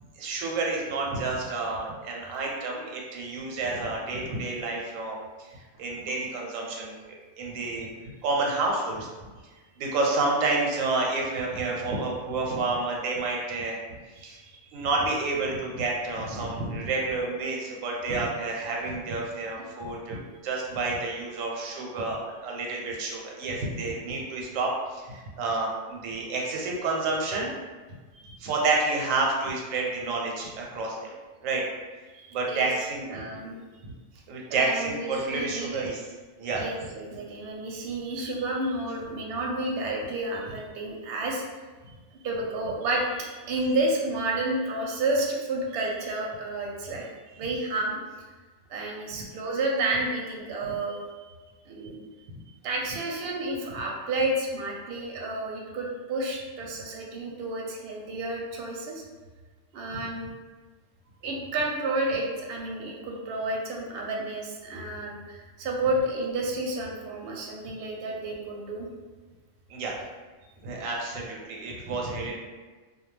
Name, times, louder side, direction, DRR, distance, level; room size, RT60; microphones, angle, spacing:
voice 1, 0.2-9.1 9.8-13.8 14.2-14.4 14.7-27.5 28.4-31.1 31.4-31.6 32.3-33.1 33.8-33.9 34.3-36.0 36.4-36.6 43.6-43.7 69.7-69.9 70.6-72.4, right 3 dB, 90° right, -1 dB, 1.0 m, -29 dB
voice 2, 14.2-14.6 28.2-28.4 32.1-32.7 33.1-33.5 34.5-35.9 36.6-41.4 42.2-47.1 47.4-48.0 48.7-51.0 51.7-51.9 52.6-59.0 59.7-60.2 61.2-68.9, right 2 dB, 65° right, -1 dB, 0.7 m, -30 dB
2.2 x 2.1 x 3.1 m, 1.3 s
omnidirectional pair, 1.3 m